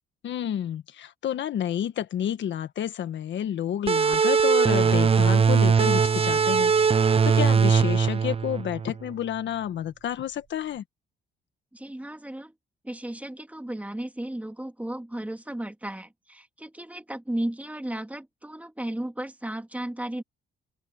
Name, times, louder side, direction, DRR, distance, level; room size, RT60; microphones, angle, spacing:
voice 1, 0.2-6.7 7.2-10.8, left 10 dB, 70° left, 1.5 m, -30 dB
sound 1, 3.9-9.1, right 6 dB, 30° right, 0.6 m, -20 dB
voice 2, 11.7-12.5 12.8-20.2, right 1 dB, 5° right, 3.3 m, -34 dB
open air
cardioid pair, 90°, 20 cm